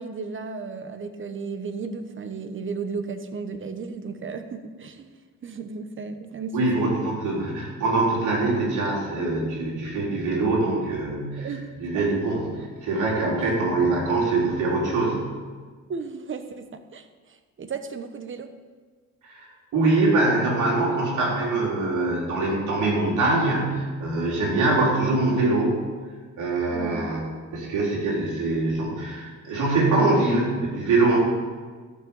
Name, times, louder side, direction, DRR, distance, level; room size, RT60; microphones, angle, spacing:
voice 1, 0.0-5.1 5.4-6.9 11.4-11.7 11.9-12.1 15.9-18.5 26.7-27.1, right 4 dB, 40° right, 9 dB, 1.2 m, -34 dB
voice 2, 6.5-11.5 11.8-15.2 19.3-19.5 19.7-25.7 26.4-27.2 27.5-31.2, right 2 dB, 80° right, -4 dB, 4.2 m, -23 dB
13.5 x 6.2 x 7.2 m, 1.5 s
cardioid pair, 90°, 30 cm